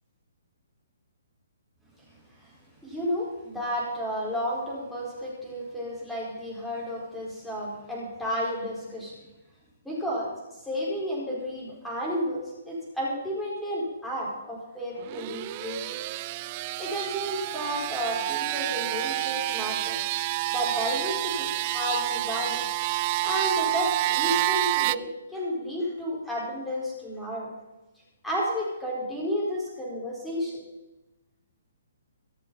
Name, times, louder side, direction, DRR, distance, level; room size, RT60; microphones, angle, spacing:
voice 1, 2.8-9.2 9.8-16.0 16.8-20.0 20.5-22.6 23.2-27.5 28.2-30.6, equal, ahead, -6 dB, 5.0 m, -32 dB
sound 1, 15.0-25.0, right 17 dB, 30° right, 0.3 m, -29 dB
24.0 x 8.6 x 4.3 m, 1.0 s
hypercardioid pair, 165°, 0 cm